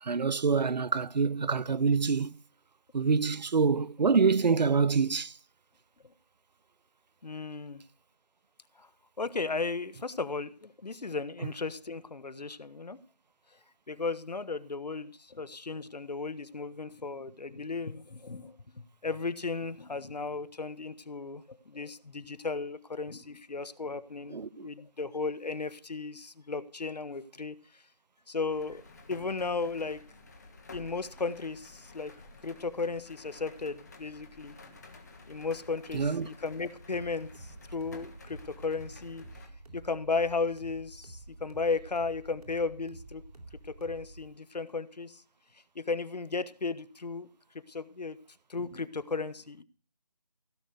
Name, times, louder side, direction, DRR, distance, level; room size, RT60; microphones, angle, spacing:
voice 1, 0.0-2.3 2.9-5.3 24.3-24.7 35.9-36.3, right 5 dB, 85° right, 0.6 m, -26 dB
voice 2, 7.2-7.8 8.8-8.9 9.2-13.0 13.9-27.5 28.3-28.8 29.1-30.0 30.7-32.1 32.4-34.5 35.3-39.2 39.7-43.2 43.6-45.2 45.7-47.3 47.7-48.2 48.5-49.6, left 4 dB, 75° left, 1.3 m, -35 dB
sound 1, 28.5-39.5, left 2 dB, 25° left, 1.6 m, -52 dB
sound 2, 36.9-44.3, right 2 dB, 60° right, 3.7 m, -49 dB
16.5 x 6.4 x 6.7 m
figure-of-eight pair, 175°, 21 cm